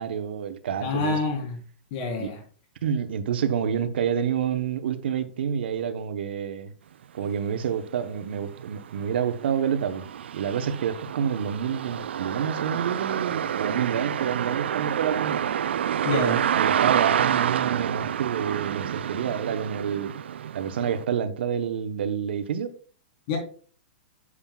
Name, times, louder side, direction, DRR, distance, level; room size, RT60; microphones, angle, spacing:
voice 1, 0.0-1.2 2.2-2.3 2.8-6.7 7.1-10.1 10.3-15.5 16.1-20.1 20.5-22.8, right 8 dB, 75° right, 1.0 m, -28 dB
voice 2, 0.8-1.6 1.9-2.4 16.0-16.4 23.3-23.4, left 4 dB, 45° left, 3.7 m, -27 dB
sound 1, 7.6-7.7 8.2-21.0, right 9 dB, 90° right, 0.4 m, -28 dB
9.6 x 7.5 x 2.4 m
hypercardioid pair, 150°, 6 cm